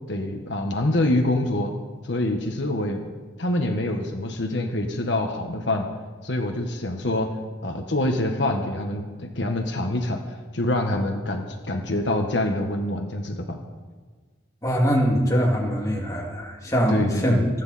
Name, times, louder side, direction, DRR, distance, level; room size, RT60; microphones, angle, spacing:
voice 1, 0.1-1.7 2.0-3.0 3.4-5.9 6.2-7.3 7.6-10.2 10.5-13.6 16.9-17.5, left 1 dB, 65° left, 4 dB, 1.4 m, -25 dB
voice 2, 14.6-17.4, equal, 20° left, -2 dB, 2.4 m, -22 dB
28.5 x 9.8 x 4.2 m, 1.4 s
head